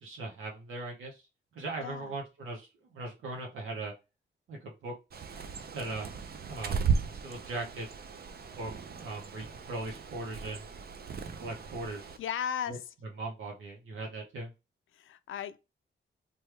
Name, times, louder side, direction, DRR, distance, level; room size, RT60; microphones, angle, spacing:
voice 1, 0.0-1.3 1.5-3.9 4.5-4.9 5.7-7.9 8.6-10.7 11.4-12.2 12.7-12.8 13.2-14.5, right 2 dB, 90° right, 0.8 m, -39 dB
voice 2, 1.8-2.1 12.2-12.9 14.9-15.6, left 8 dB, 80° left, 0.4 m, -36 dB
Bird, 5.1-12.2, right 5 dB, 50° right, 0.5 m, -36 dB
3.1 x 2.3 x 3.3 m
cardioid pair, 90°, 20 cm